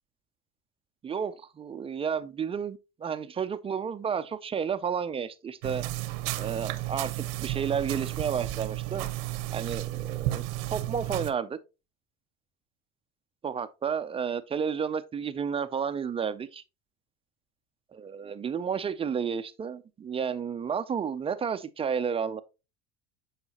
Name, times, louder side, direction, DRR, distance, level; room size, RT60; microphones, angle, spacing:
voice 1, 1.0-5.9 6.4-9.1 9.5-10.4 10.7-11.6 13.4-16.6 17.9-22.4, right 7 dB, 15° right, 0.3 m, -31 dB
sound 1, 5.6-11.3, right 16 dB, 80° right, 0.8 m, -33 dB
8.1 x 4.8 x 2.8 m
supercardioid pair, 120°, 35 cm